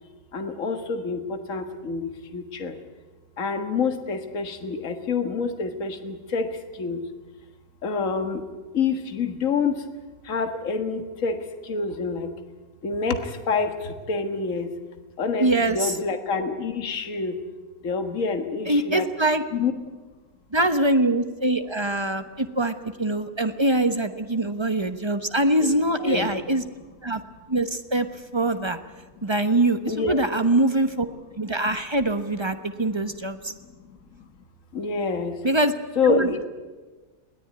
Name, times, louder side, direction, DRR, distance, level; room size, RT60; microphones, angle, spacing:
voice 1, 0.3-2.8 3.4-7.0 7.8-8.4 8.7-9.8 10.2-12.3 12.8-14.7 15.2-17.4 17.8-19.1 19.5-19.7 25.6-25.7 26.0-26.3 29.9-30.2 34.7-35.4 36.0-36.4, left 4 dB, 55° left, 7 dB, 2.0 m, -27 dB
voice 2, 15.4-15.9 18.7-19.4 20.5-26.6 27.0-27.2 27.5-28.1 28.3-28.8 29.2-31.1 31.4-33.5 35.4-35.7 36.1-36.5, right 1 dB, 20° right, 8 dB, 0.9 m, -23 dB
21.5 x 18.0 x 9.4 m, 1.3 s
omnidirectional pair, 1.7 m